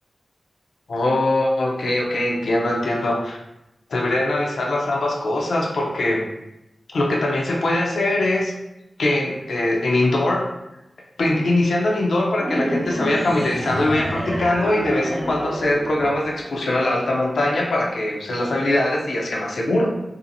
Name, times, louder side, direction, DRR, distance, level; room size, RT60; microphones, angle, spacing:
voice 1, 0.9-3.4 3.9-6.3 6.9-8.5 9.0-10.5 11.2-19.9, left 1 dB, 85° left, -1 dB, 0.4 m, -22 dB
sound 1, 12.4-16.9, equal, 40° right, 0.8 m, -28 dB
2.6 x 2.4 x 2.6 m, 0.90 s
wide cardioid pair, 65°, 0 cm